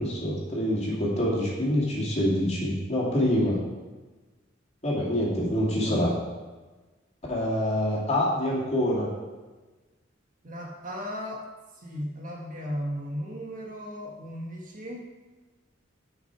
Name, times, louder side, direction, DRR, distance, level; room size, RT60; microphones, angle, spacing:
voice 1, 0.0-3.6 4.8-6.1 7.3-9.1, left 1 dB, 35° left, -4 dB, 2.4 m, -26 dB
voice 2, 10.4-11.4 11.7-15.0, equal, 45° right, -1 dB, 1.6 m, -36 dB
10.5 x 5.9 x 4.7 m, 1.3 s
head